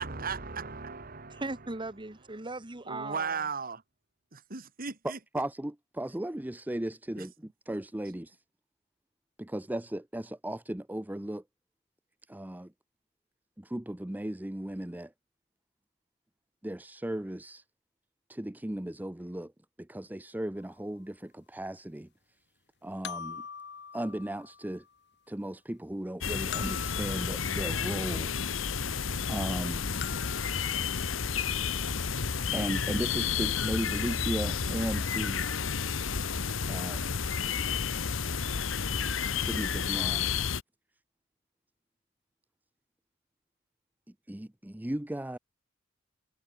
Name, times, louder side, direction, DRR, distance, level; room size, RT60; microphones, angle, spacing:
voice 1, 0.0-1.4 2.9-3.8 4.3-5.2 7.2-7.3, right 5 dB, 50° right, 2.2 m, -36 dB
voice 2, 1.4-3.4, right 2 dB, 25° right, 1.5 m, -38 dB
voice 3, 5.0-7.3 7.7-8.4 9.4-11.4 12.3-12.7 13.6-15.1 16.6-17.6 18.3-19.5 19.9-22.1 22.8-23.4 23.9-24.8 25.3-28.3 29.3-29.9 32.5-35.4 36.7-37.1 39.4-40.3 44.3-45.4, right 1 dB, 10° right, 0.6 m, -36 dB
sound 1, 20.6-20.7 23.0-24.9 26.5-28.2 30.0-31.4, left 7 dB, 60° left, 3.5 m, -43 dB
sound 2, 26.2-40.6, left 6 dB, 85° left, 1.1 m, -31 dB
head